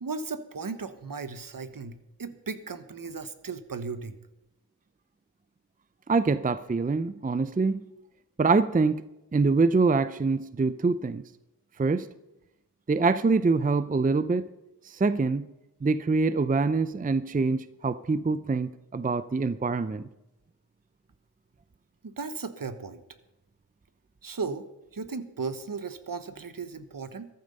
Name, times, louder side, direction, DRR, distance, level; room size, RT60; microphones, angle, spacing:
voice 1, 0.0-4.2 22.0-23.0 24.2-24.7 24.9-27.3, right 4 dB, 55° right, 1.2 m, -36 dB
voice 2, 6.1-7.8 8.4-9.0 9.3-11.2 11.8-12.1 12.9-14.5 14.8-15.5 15.8-20.0, right 4 dB, 20° right, 0.5 m, -25 dB
14.0 x 12.0 x 5.4 m
wide cardioid pair, 65°, 39 cm